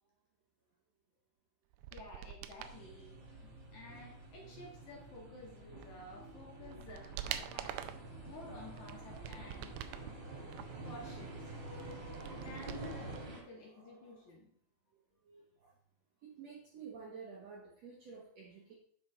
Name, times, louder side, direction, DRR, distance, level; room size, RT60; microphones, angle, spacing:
sound 1, 1.7-2.8 5.8-5.9 6.4-8.1 8.6-10.1 10.5-13.2 13.5-13.6, right 11 dB, 80° right, 2.2 m, -46 dB
voice 1, 1.9-3.2 3.7-7.8 8.2-9.8 10.4-10.5 10.8-11.5 12.3-14.5, left 2 dB, 55° left, -1 dB, 2.7 m, -52 dB
sound 2, 2.6-13.4, right 2 dB, 40° right, 2.6 m, -48 dB
voice 2, 3.1-3.4 3.7-3.8 13.4-14.3 15.2-15.7 16.2-18.7, right 5 dB, 60° right, -3 dB, 1.9 m, -52 dB
10.5 x 6.2 x 4.0 m, 0.64 s
omnidirectional pair, 4.7 m